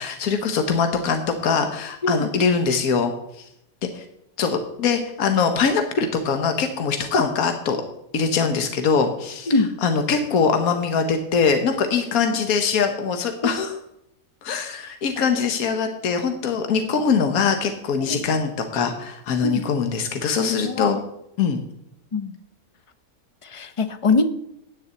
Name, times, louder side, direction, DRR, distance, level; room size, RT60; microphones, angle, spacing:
voice 1, 0.0-3.4 3.9-4.0 4.4-7.8 8.1-9.5 9.8-13.7 14.4-21.0 21.4-21.6, left 5 dB, 80° left, 6 dB, 1.5 m, -22 dB
voice 2, 20.2-20.9 22.1-22.3 23.4-24.3, left 3 dB, 40° left, 11 dB, 0.5 m, -23 dB
9.1 x 6.8 x 8.1 m, 0.80 s
omnidirectional pair, 1.5 m